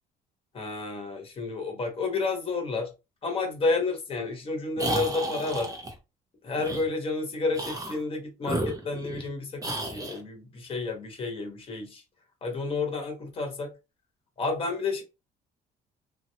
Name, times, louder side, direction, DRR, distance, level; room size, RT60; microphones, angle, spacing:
voice 1, 0.5-2.9 3.2-5.7 6.4-12.0 12.4-13.7 14.4-15.0, left 3 dB, 35° left, 1.1 m, -30 dB
sound 1, 4.8-5.9 6.6-6.8 7.5-8.0 8.4-9.3 9.6-10.2, right 1 dB, 20° right, 0.7 m, -32 dB
3.0 x 2.0 x 2.7 m
cardioid pair, 110°, 17 cm